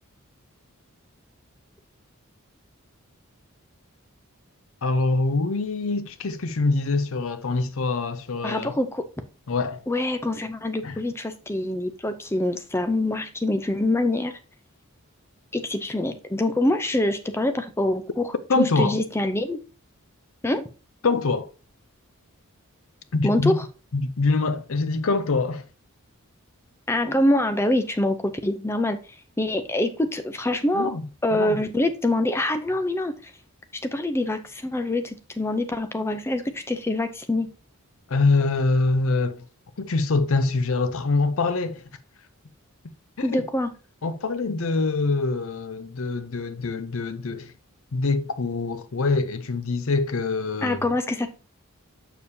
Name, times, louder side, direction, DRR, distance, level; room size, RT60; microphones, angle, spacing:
voice 1, 4.8-8.7 9.5-9.8 10.8-11.0 18.5-19.0 21.0-21.5 23.1-23.5 23.9-25.6 30.7-31.0 31.3-31.6 38.1-39.4 39.8-41.8 43.2-43.4 44.0-47.5 47.9-50.9, left 3 dB, 65° left, 0.6 m, -24 dB
voice 2, 8.4-9.0 9.9-14.4 15.5-19.6 20.4-20.7 23.2-23.7 26.9-29.0 29.4-31.0 31.2-33.3 33.8-37.5 43.2-43.7 50.6-51.3, left 1 dB, 10° left, 0.5 m, -25 dB
6.9 x 6.5 x 2.7 m
head